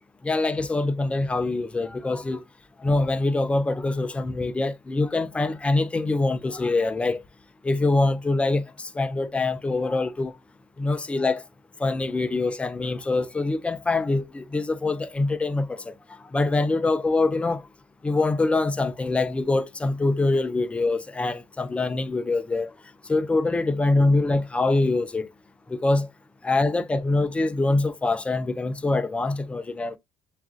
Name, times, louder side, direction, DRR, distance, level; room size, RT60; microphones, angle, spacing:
voice 1, 0.2-2.4 2.8-7.2 7.6-10.4 10.8-11.4 11.8-15.9 16.3-17.6 18.0-22.7 23.1-25.3 25.7-26.1 26.4-30.0, left 2 dB, 15° left, 0.4 m, -24 dB
7.0 x 2.4 x 2.4 m
cardioid pair, 115°, 9 cm